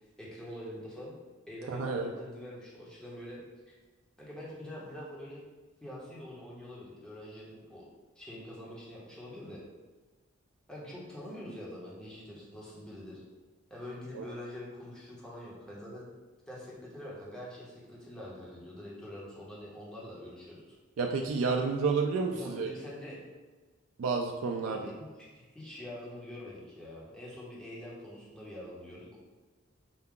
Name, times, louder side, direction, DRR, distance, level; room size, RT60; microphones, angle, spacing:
voice 1, 0.2-1.1 1.5-3.4 3.7-3.8 4.2-5.4 5.8-7.9 8.2-9.6 10.7-13.2 13.7-16.1 16.5-20.8 22.3-23.3 24.6-29.2, left 1 dB, 5° left, -6 dB, 0.9 m, -45 dB
voice 2, 1.7-2.1 14.1-14.2 21.0-22.7 24.0-24.8, right 4 dB, 90° right, 1 dB, 0.4 m, -30 dB
4.5 x 2.3 x 3.6 m, 1.3 s
head